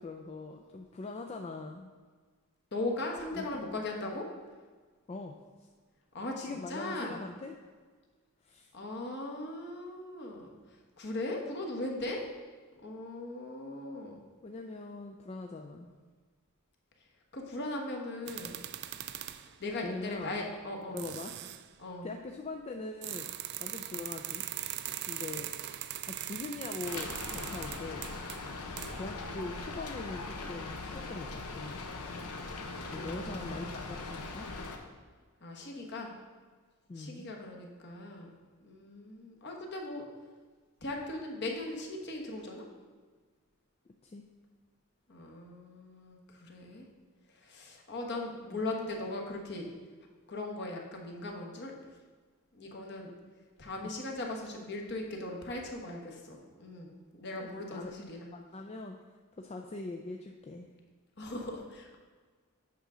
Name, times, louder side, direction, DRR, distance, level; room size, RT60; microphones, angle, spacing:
voice 1, 0.0-1.9 3.3-3.8 5.1-5.7 6.4-7.5 8.4-8.7 14.4-15.9 19.8-20.4 20.9-21.3 22.0-23.3 23.6-24.5 25.1-25.5 26.1-28.1 28.9-31.8 32.9-34.5 36.9-37.2 44.0-44.2 48.5-48.7 57.4-57.9 58.3-60.7, left 3 dB, 30° left, 2 dB, 0.3 m, -42 dB
voice 2, 2.7-4.3 6.1-7.2 8.7-12.2 12.8-14.3 17.3-18.6 19.6-21.0 21.8-22.1 32.9-33.8 35.4-36.1 37.0-38.4 38.6-40.1 40.8-42.7 45.1-46.9 47.3-49.7 50.3-51.7 52.5-53.1 53.6-58.3 61.2-62.0, left 2 dB, 50° left, 1 dB, 1.2 m, -39 dB
sound 1, 18.3-19.5 20.5-20.6 21.0-21.7 23.0-29.1, right 12 dB, 50° right, 0.3 m, -40 dB
Rain, 26.8-34.8, left 3 dB, 90° left, 0.9 m, -40 dB
8.3 x 3.7 x 6.2 m, 1.5 s
head